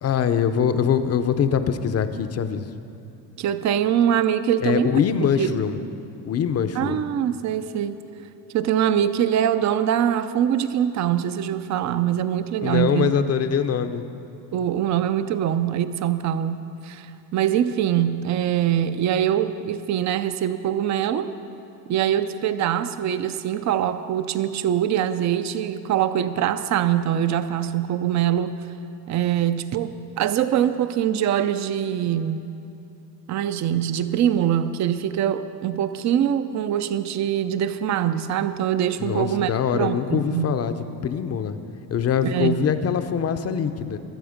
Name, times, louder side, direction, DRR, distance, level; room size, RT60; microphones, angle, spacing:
voice 1, 0.0-2.7 4.6-5.8 6.2-7.0 12.6-14.0 39.0-40.8 41.0-41.6 41.9-44.0, left 7 dB, 35° left, 10 dB, 0.7 m, -23 dB
voice 2, 3.4-4.9 5.4-5.5 6.8-8.0 8.5-13.2 14.5-17.1 17.3-21.3 21.9-28.6 29.1-32.4 33.3-40.5 42.2-42.7, right 10 dB, 40° right, 12 dB, 0.6 m, -23 dB
23.5 x 7.8 x 5.1 m, 2.7 s
cardioid pair, 135°, 44 cm